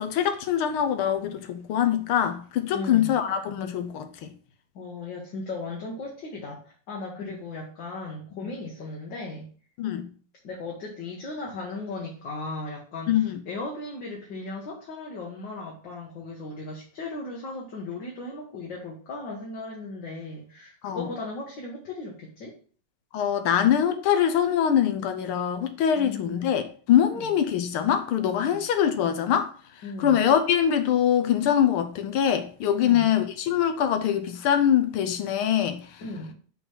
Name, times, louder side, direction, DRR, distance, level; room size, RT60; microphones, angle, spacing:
voice 1, 0.0-4.3 7.2-7.3 9.8-10.1 13.1-13.4 20.8-21.1 23.1-29.5 30.0-35.8, left 9 dB, 75° left, 1.6 m, -23 dB
voice 2, 2.7-3.1 4.8-9.5 10.4-22.5 25.9-26.4 27.1-27.3 28.4-28.6 29.8-30.2 32.8-33.1 36.0-36.3, left 2 dB, 60° left, 1.9 m, -37 dB
5.5 x 4.0 x 6.0 m
omnidirectional pair, 2.4 m